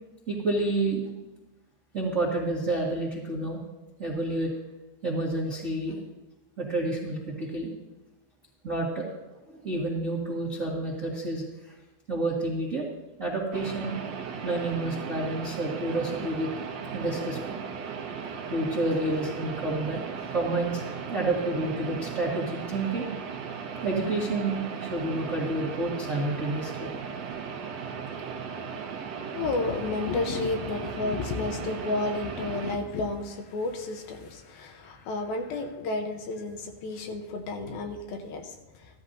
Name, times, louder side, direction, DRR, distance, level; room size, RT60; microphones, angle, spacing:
voice 1, 0.3-1.1 1.9-3.6 4.0-4.5 5.0-6.0 6.6-7.7 8.6-9.0 9.5-11.7 12.1-12.8 13.2-13.9 14.4-16.5 16.9-17.6 18.5-23.1 23.8-27.1, right 2 dB, 60° right, -5 dB, 0.8 m, -29 dB
sound 1, 13.5-32.8, right 6 dB, 90° right, 1.4 m, -37 dB
voice 2, 29.3-38.5, left 3 dB, 75° left, 4 dB, 2.6 m, -31 dB
15.5 x 13.0 x 2.7 m, 1.1 s
omnidirectional pair, 4.6 m